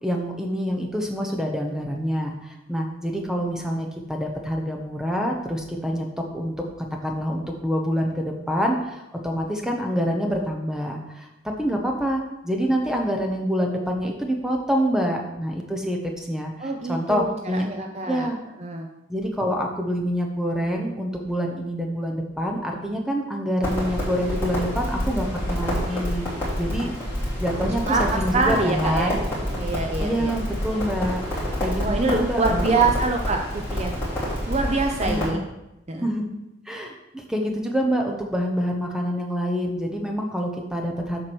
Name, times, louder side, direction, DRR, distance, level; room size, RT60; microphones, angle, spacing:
voice 1, 0.0-6.1 6.3-11.3 11.6-17.7 18.0-18.4 19.1-26.3 26.6-26.9 27.4-29.2 30.0-32.7 35.0-35.4 36.0-36.2 36.6-41.2, equal, 5° right, 2 dB, 0.9 m, -26 dB
voice 2, 16.6-18.3 18.6-18.9 27.6-29.2 29.5-30.3 31.8-34.0 34.5-35.4 35.9-36.1, right 3 dB, 30° right, 3 dB, 0.5 m, -25 dB
Crackle, 23.6-35.3, equal, 15° left, 3.1 m, -28 dB
7.5 x 4.7 x 6.3 m, 0.92 s
head